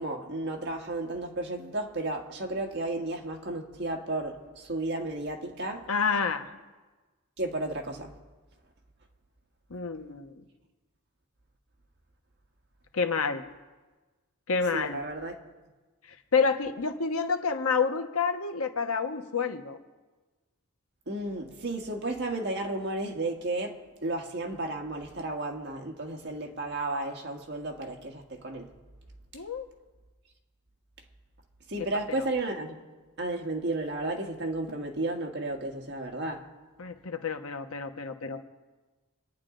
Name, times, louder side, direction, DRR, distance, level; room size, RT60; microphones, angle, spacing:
voice 1, 0.0-5.9 7.4-8.1 14.7-15.3 21.1-28.7 31.7-32.8 33.2-36.4, right 2 dB, 50° right, 1 dB, 1.7 m, -33 dB
voice 2, 5.9-6.4 9.7-10.3 12.9-13.4 14.5-15.0 16.3-19.8 29.3-29.7 32.2-32.3 36.8-38.5, left 5 dB, 75° left, 6 dB, 1.1 m, -28 dB
26.0 x 10.0 x 3.9 m, 1.3 s
head